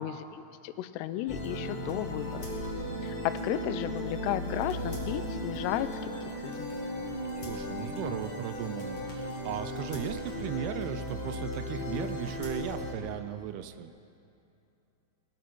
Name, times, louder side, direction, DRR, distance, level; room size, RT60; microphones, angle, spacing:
voice 1, 0.0-2.5 3.0-6.1 6.4-6.7, left 12 dB, 90° left, 12 dB, 2.8 m, -34 dB
sound 1, 1.3-12.9, left 1 dB, 35° left, 2.6 m, -36 dB
voice 2, 7.4-13.9, right 10 dB, 80° right, 11 dB, 2.5 m, -37 dB
21.5 x 13.5 x 4.6 m, 2.7 s
omnidirectional pair, 4.7 m